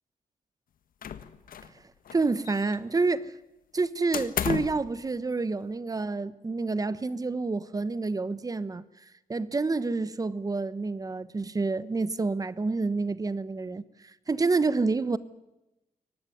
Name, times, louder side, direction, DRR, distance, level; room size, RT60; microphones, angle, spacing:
sound 1, 1.0-1.8 2.0-3.0 4.1-4.9, left 8 dB, 75° left, 1.4 m, -33 dB
voice 1, 2.1-3.3 3.7-8.8 9.3-13.8 14.3-15.2, right 3 dB, 25° right, 1.1 m, -28 dB
23.0 x 18.5 x 9.3 m
cardioid pair, 115°, 15 cm